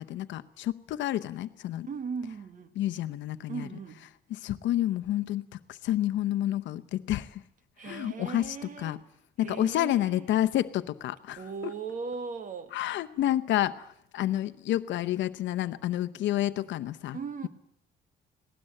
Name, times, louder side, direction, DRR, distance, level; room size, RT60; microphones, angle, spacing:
voice 1, 0.0-1.9 2.8-3.7 4.3-7.4 7.8-8.6 8.8-9.0 9.4-11.4 12.7-13.9 14.1-17.2, left 13 dB, 80° left, 0.8 m, -29 dB
voice 2, 1.9-2.7 3.5-4.1 7.8-9.0 9.4-10.3 11.4-12.8 17.1-17.5, right 5 dB, 45° right, 1.6 m, -38 dB
19.5 x 18.0 x 8.9 m
cardioid pair, 150°, 19 cm